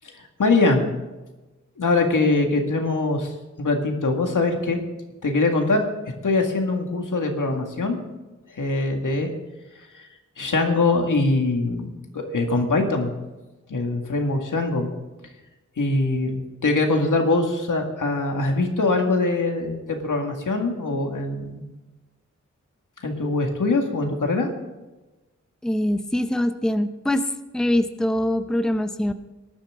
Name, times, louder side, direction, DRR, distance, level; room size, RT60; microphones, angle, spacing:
voice 1, 0.2-0.9 1.8-3.3 3.6-4.8 5.2-5.9 6.2-8.0 8.5-9.3 9.9-10.1 10.4-13.1 13.7-14.9 15.8-21.6 23.0-24.5, left 3 dB, 90° left, 3 dB, 2.0 m, -23 dB
voice 2, 25.6-27.3 27.5-29.1, left 1 dB, ahead, 9 dB, 0.7 m, -23 dB
19.0 x 11.5 x 3.7 m, 1.1 s
wide cardioid pair, 100°, 30 cm